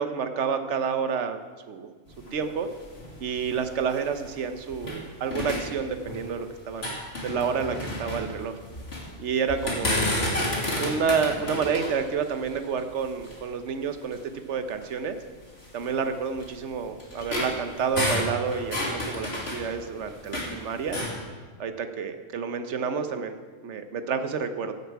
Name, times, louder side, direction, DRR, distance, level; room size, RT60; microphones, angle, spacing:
voice 1, 0.0-1.4 1.7-1.9 2.3-2.7 3.2-7.0 7.2-8.6 9.2-10.2 10.8-14.2 14.5-15.2 15.7-21.0 21.6-23.4 23.6-24.7, right 6 dB, 65° right, 8 dB, 1.1 m, -29 dB
sound 1, 2.1-5.0 5.3-6.4 6.7-9.1 9.5-13.5 14.1-14.2 14.7-14.8 15.6-20.5 20.8-21.2, left 1 dB, 50° left, 2.9 m, -31 dB
15.5 x 8.3 x 4.6 m, 1.5 s
omnidirectional pair, 1.3 m